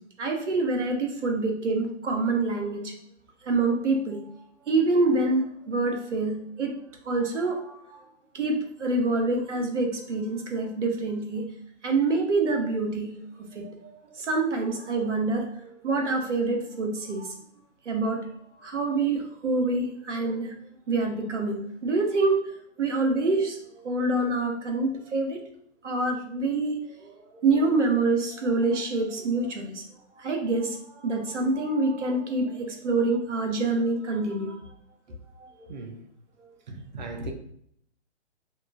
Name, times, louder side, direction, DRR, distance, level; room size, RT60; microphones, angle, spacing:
voice 1, 0.2-2.9 3.4-4.2 4.7-6.8 7.0-8.0 8.3-11.4 11.8-13.9 14.2-15.5 15.8-17.3 17.9-18.3 18.6-20.5 20.9-22.4 22.8-25.4 25.8-29.8 30.2-34.6 35.4-35.7, right 3 dB, 85° right, 0.8 m, -26 dB
voice 2, 35.7-36.0 37.0-37.3, right 4 dB, 40° right, 0.5 m, -38 dB
2.8 x 2.4 x 2.4 m
hypercardioid pair, 140°, 35 cm